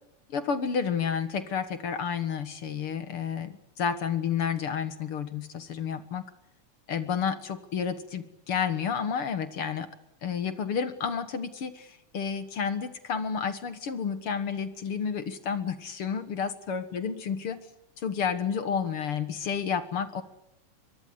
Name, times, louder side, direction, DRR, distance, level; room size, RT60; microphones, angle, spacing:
voice 1, 0.3-6.2 6.9-9.9 10.2-17.6 18.0-20.2, left 6 dB, 50° left, 11 dB, 2.0 m, -30 dB
23.5 x 23.0 x 8.1 m, 0.85 s
omnidirectional pair, 3.7 m